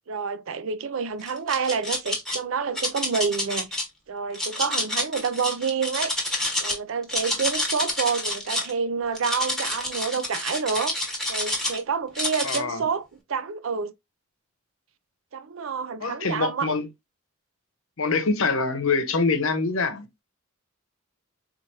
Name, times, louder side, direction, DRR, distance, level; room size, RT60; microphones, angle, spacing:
voice 1, 0.1-6.2 6.6-11.0 11.3-13.9 15.3-16.7 18.1-18.2, right 5 dB, 65° right, 0.5 m, -28 dB
sound 1, 1.2-2.4 2.7-3.8 4.3-6.8 7.0-8.7 9.1-11.8 12.1-12.6, left 1 dB, ahead, 1.1 m, -28 dB
voice 2, 12.4-12.8 16.0-16.9 18.0-20.1, left 4 dB, 70° left, 0.8 m, -25 dB
4.4 x 2.5 x 2.9 m
head